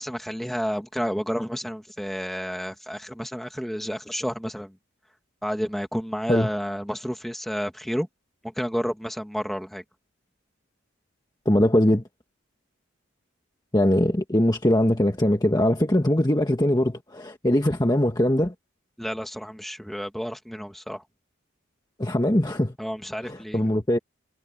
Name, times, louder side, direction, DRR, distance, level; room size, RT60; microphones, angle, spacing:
voice 1, 0.0-4.8 5.4-8.1 8.4-9.8 19.0-21.0 22.8-23.7, equal, ahead, 2.4 m, -30 dB
voice 2, 11.4-12.0 13.7-18.5 22.0-22.7 23.2-24.0, left 1 dB, 20° left, 1.4 m, -21 dB
head